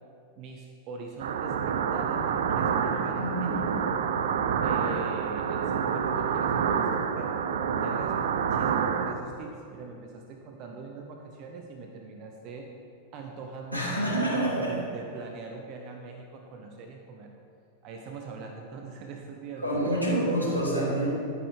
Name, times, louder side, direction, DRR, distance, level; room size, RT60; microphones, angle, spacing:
voice 1, 0.4-3.9 4.6-7.4 7.8-12.7 13.1-17.3 17.8-20.2, right 4 dB, 40° right, 2 dB, 0.8 m, -42 dB
sound 1, 1.2-9.1, right 7 dB, 60° right, 0.5 m, -28 dB
voice 2, 3.2-3.7 13.7-14.8 19.6-21.1, right 1 dB, 90° right, -5 dB, 2.3 m, -27 dB
11.0 x 9.1 x 3.4 m, 2.5 s
figure-of-eight pair, 90°, 0 cm